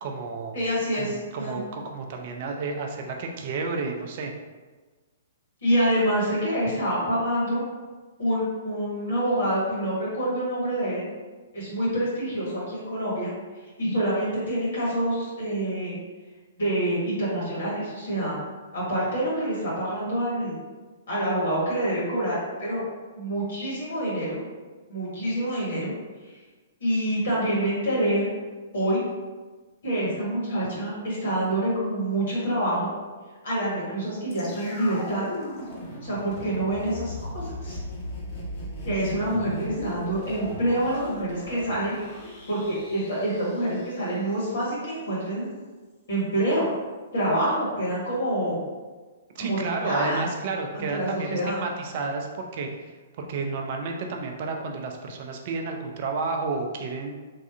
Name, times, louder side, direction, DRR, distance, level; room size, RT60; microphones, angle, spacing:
voice 1, 0.0-0.5 0.9-4.3 49.3-52.7 53.2-57.2, right 4 dB, 45° right, 3 dB, 0.4 m, -31 dB
voice 2, 0.5-1.6 5.6-7.6 8.2-11.0 11.5-13.3 13.8-16.0 16.6-18.4 18.7-20.6 21.1-22.8 23.2-24.4 24.9-25.9 26.8-28.3 28.7-29.0 29.8-32.9 33.4-35.3 36.0-37.8 38.8-41.9 42.5-45.5 46.1-46.7 47.1-48.6 49.4-50.3 50.7-51.6, right 1 dB, 60° left, -7 dB, 1.4 m, -26 dB
sound 1, 34.3-44.4 44.7-44.8, left 1 dB, 30° left, 0.9 m, -38 dB
3.3 x 2.3 x 2.5 m, 1.3 s
figure-of-eight pair, 115°, 0 cm